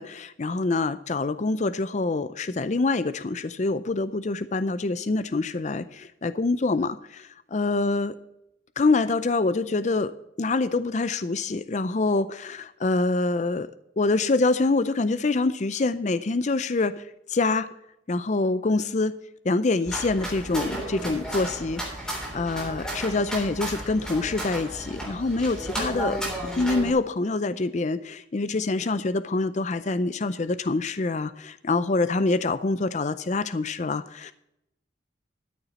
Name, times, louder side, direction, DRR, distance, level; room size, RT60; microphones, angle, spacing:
voice 1, 0.0-8.1 8.8-10.1 10.4-13.7 14.0-17.7 18.1-19.1 19.4-26.2 26.6-34.3, left 3 dB, 35° left, 14 dB, 0.5 m, -25 dB
sound 1, 19.9-26.9, right 1 dB, 5° left, 3.4 m, -33 dB
13.0 x 7.0 x 5.8 m, 0.83 s
head